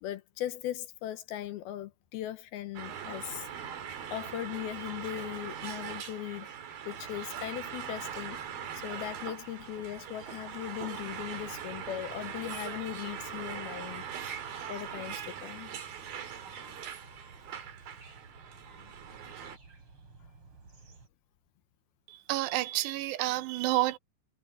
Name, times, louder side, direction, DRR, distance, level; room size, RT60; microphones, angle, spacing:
voice 1, 0.0-3.5 4.1-6.5 6.9-8.4 8.7-14.0 14.7-15.7, left 13 dB, 80° left, 2.5 m, -39 dB
sound 1, 2.8-19.6, right 8 dB, 60° right, 4.0 m, -41 dB
sound 2, 6.9-21.1, right 4 dB, 30° right, 4.8 m, -56 dB
voice 2, 22.1-24.0, right 17 dB, 90° right, 3.0 m, -29 dB
omnidirectional pair, 4.8 m